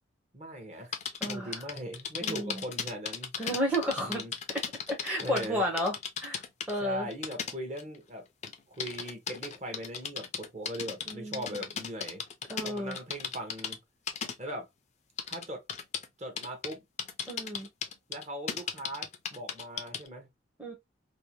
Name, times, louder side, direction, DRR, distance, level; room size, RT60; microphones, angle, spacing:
voice 1, 0.3-0.9 1.2-3.3 4.0-4.3 5.2-5.6 6.7-8.3 8.7-12.2 12.6-13.8 14.4-14.7 15.3-15.6 16.2-16.8 18.1-20.3, right 1 dB, 35° right, 0.8 m, -39 dB
sound 1, 0.9-5.5 5.8-6.7 7.1-8.0 8.4-13.7 14.1-14.3 15.2-16.1 16.4-16.7 17.0-20.1, left 7 dB, 35° left, 0.4 m, -36 dB
voice 2, 1.2-1.6 2.2-2.6 3.4-4.2 4.5-4.6 5.0-5.9 6.2-6.4 6.7-7.1 11.1-11.6 12.5-13.0 17.3-17.7 20.6-20.7, equal, 5° right, 0.6 m, -32 dB
2.6 x 2.1 x 2.7 m
head